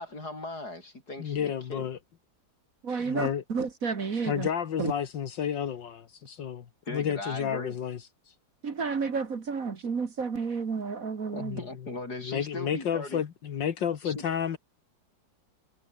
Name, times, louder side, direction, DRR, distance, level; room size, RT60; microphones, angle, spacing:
voice 1, 0.0-1.9 6.9-7.8 11.3-13.2 14.0-14.2, left 2 dB, 55° left, 7.3 m, -39 dB
voice 2, 1.2-2.0 3.0-3.4 4.3-8.0 8.3-8.4 11.4-11.6 12.2-14.6, left 8 dB, 75° left, 2.1 m, -31 dB
voice 3, 2.8-4.5 4.8-4.9 8.6-11.6, right 5 dB, 50° right, 2.1 m, -31 dB
omnidirectional pair, 2.0 m